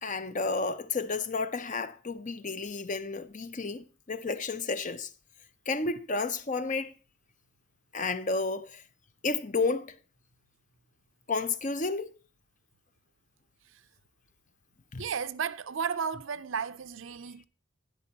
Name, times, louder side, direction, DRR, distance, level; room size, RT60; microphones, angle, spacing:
voice 1, 0.0-5.1 5.7-6.9 7.9-8.8 9.2-10.0 11.3-12.1 14.9-15.1, left 3 dB, 35° left, 0.6 m, -31 dB
voice 2, 15.0-17.4, right 6 dB, 65° right, 0.5 m, -33 dB
12.5 x 10.5 x 2.9 m
head